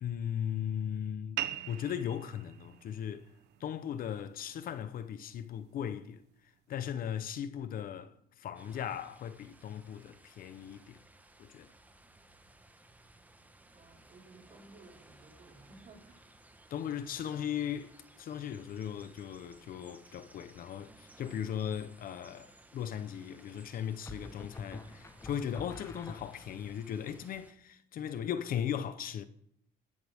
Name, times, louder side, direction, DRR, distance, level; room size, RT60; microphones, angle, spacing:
voice 1, 0.0-3.3 3.6-6.2 6.7-11.0 11.4-11.7 16.7-29.2, left 9 dB, 60° left, 0.9 m, -38 dB
sound 1, 1.4-6.4, right 13 dB, 85° right, 1.0 m, -44 dB
sound 2, 8.5-27.5, right 2 dB, 10° right, 1.3 m, -59 dB
voice 2, 13.7-16.3, right 3 dB, 50° right, 4.9 m, -57 dB
sound 3, 21.4-21.9 24.1-26.7, left 2 dB, 15° left, 1.0 m, -47 dB
19.5 x 11.0 x 3.6 m
cardioid pair, 110°, 17 cm